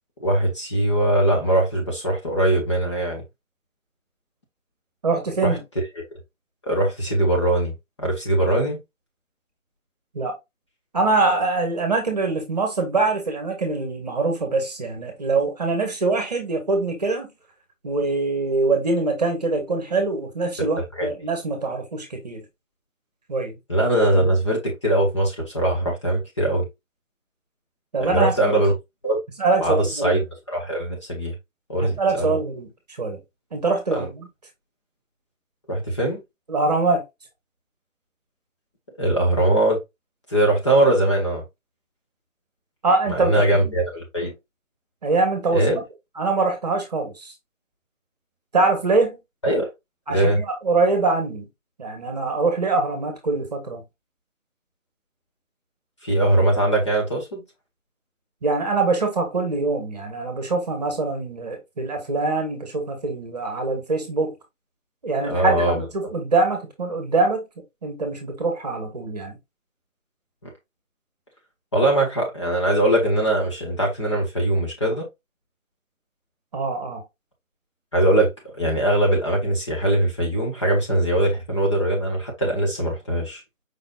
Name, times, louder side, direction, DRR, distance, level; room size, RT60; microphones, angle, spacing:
voice 1, 0.2-3.2 5.4-5.6 6.6-8.8 20.9-21.1 23.7-26.7 28.0-28.7 29.0-29.2 29.6-31.3 31.7-32.4 33.9-34.1 35.7-36.2 39.0-39.8 40.3-41.4 43.1-44.3 45.5-45.8 49.4-49.7 50.1-50.4 56.0-57.4 65.2-65.8 70.4-70.5 71.7-75.1 77.9-83.4, right 1 dB, 20° left, 1.0 m, -21 dB
voice 2, 5.0-5.6 10.1-10.3 10.9-17.3 17.8-22.4 23.3-23.6 27.9-28.6 29.4-30.2 31.8-32.7 33.0-33.2 33.5-34.3 36.5-37.0 42.8-43.7 45.0-45.7 46.2-47.3 48.5-49.2 50.1-51.5 51.8-53.8 58.4-64.3 65.0-67.5 67.8-69.3 76.5-77.0, right 3 dB, 30° right, 1.2 m, -23 dB
5.2 x 4.0 x 2.3 m
figure-of-eight pair, 155°, 41 cm